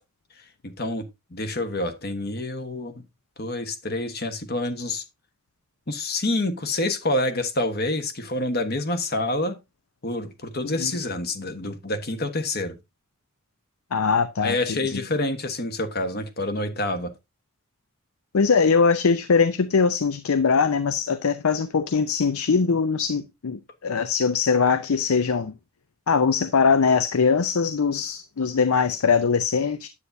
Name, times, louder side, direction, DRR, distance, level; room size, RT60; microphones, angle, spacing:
voice 1, 0.4-1.0 1.3-3.0 3.4-5.0 5.9-9.6 10.0-12.8 14.4-17.1, left 2 dB, 45° left, 1.2 m, -27 dB
voice 2, 13.9-15.1 18.3-25.5 26.1-29.9, left 5 dB, 80° left, 0.6 m, -22 dB
9.7 x 8.2 x 2.7 m
head